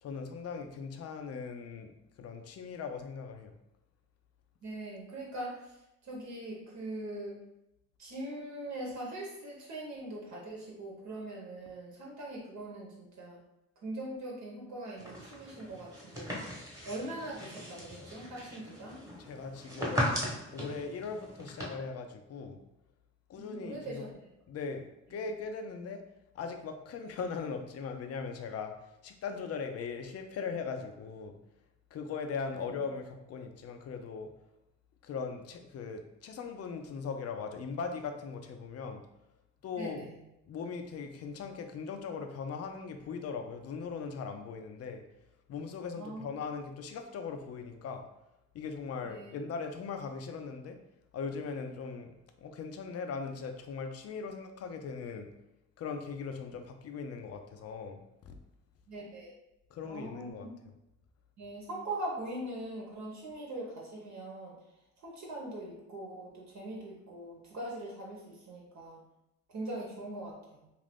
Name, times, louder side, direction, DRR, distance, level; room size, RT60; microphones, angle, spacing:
voice 1, 0.0-1.9 2.2-3.5 19.2-22.6 23.3-24.0 24.5-24.8 25.1-26.0 26.3-28.7 29.0-31.4 31.9-34.3 35.0-39.0 39.6-40.1 40.5-45.0 45.5-48.0 48.5-50.8 51.1-52.1 52.4-55.3 55.8-58.3 59.7-60.5, left 5 dB, 55° left, 6 dB, 0.5 m, -39 dB
voice 2, 4.6-5.8 6.0-7.4 8.0-13.4 13.8-16.5 16.8-19.0 23.3-24.3 32.5-32.7 39.8-40.3 46.0-46.3 49.0-49.4 58.9-59.3 59.8-60.5 61.4-64.5 65.0-69.0 69.5-70.7, right 1 dB, 65° right, -3 dB, 0.9 m, -41 dB
sound 1, 15.0-21.6, equal, 10° right, 1.0 m, -38 dB
2.5 x 2.5 x 3.4 m, 0.90 s
cardioid pair, 90°, 30 cm